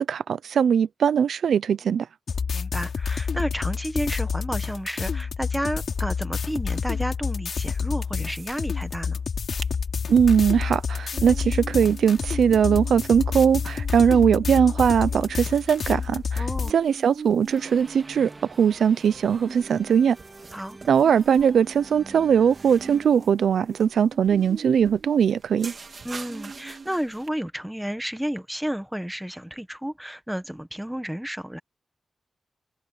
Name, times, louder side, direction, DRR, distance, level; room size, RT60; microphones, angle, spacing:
voice 1, 0.0-2.1 10.1-16.4 16.7-18.3 18.6-20.2 20.9-25.7, right 7 dB, 85° right, 0.5 m, -20 dB
sound 1, 2.3-16.7, left 6 dB, 65° left, 3.7 m, -28 dB
voice 2, 2.5-9.2 16.4-16.7 20.5-20.8 26.0-31.6, equal, 5° right, 1.4 m, -31 dB
sound 2, 8.0-8.6 8.9-9.0 9.3-9.7 10.2-27.3, right 4 dB, 45° right, 2.4 m, -43 dB
sound 3, 17.5-24.5, right 2 dB, 25° right, 3.0 m, -47 dB
wide cardioid pair, 95°, 0 cm